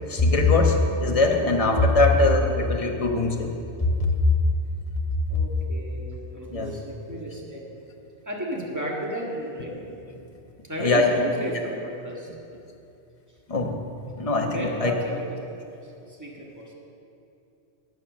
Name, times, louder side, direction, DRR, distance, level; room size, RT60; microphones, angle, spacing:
voice 1, 0.1-3.5 3.8-4.1 6.5-6.7 10.8-11.0 11.5-11.6 13.5-13.8 14.2-14.9, left 2 dB, 30° left, 2 dB, 1.1 m, -21 dB
voice 2, 5.3-7.7 8.3-9.8 10.6-12.3 14.5-15.4 16.1-16.7, equal, 15° right, -2 dB, 1.8 m, -33 dB
18.0 x 6.1 x 6.4 m, 2.7 s
omnidirectional pair, 1.2 m